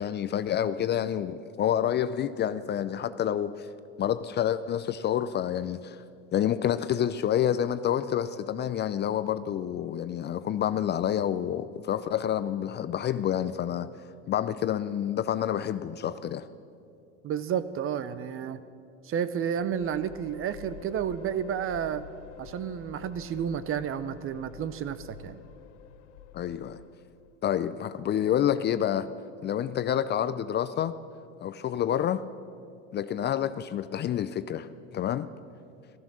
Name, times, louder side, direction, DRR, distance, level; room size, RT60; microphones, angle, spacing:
voice 1, 0.0-3.7 4.0-6.0 6.3-13.9 14.3-16.5 26.3-26.8 27.4-29.1 29.4-30.9 31.4-32.2 32.9-35.3, left 10 dB, 30° left, 13 dB, 0.5 m, -28 dB
voice 2, 17.2-18.6 19.0-22.0 22.4-25.4, right 8 dB, 40° right, 14 dB, 0.8 m, -31 dB
sound 1, 19.6-27.4, left 8 dB, 75° left, 0.8 m, -48 dB
15.0 x 14.0 x 6.3 m, 2.4 s
hypercardioid pair, 90°, 35 cm